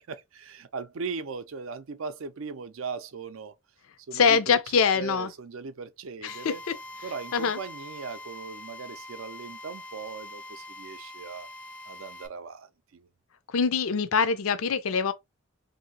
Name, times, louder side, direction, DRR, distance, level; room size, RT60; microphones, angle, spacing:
voice 1, 0.0-3.5 4.1-6.6 7.0-11.5 11.9-13.1, right 5 dB, 70° right, 0.5 m, -39 dB
voice 2, 4.1-5.3 6.2-6.5 7.3-7.6 13.5-15.1, left 5 dB, 75° left, 0.5 m, -24 dB
Drill, 6.3-12.3, left 1 dB, 10° left, 0.4 m, -44 dB
3.2 x 2.7 x 2.7 m
head